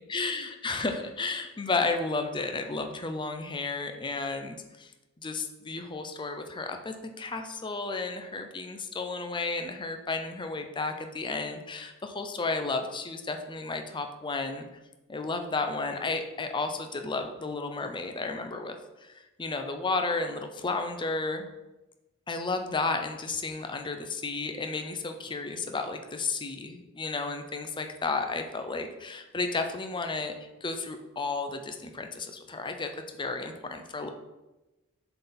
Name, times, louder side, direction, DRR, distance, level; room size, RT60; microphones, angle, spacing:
voice 1, 0.1-4.9 5.2-14.7 15.1-21.5 22.3-30.3 30.6-34.1, left 3 dB, 20° left, 6 dB, 0.6 m, -33 dB
6.7 x 4.0 x 4.3 m, 1.0 s
head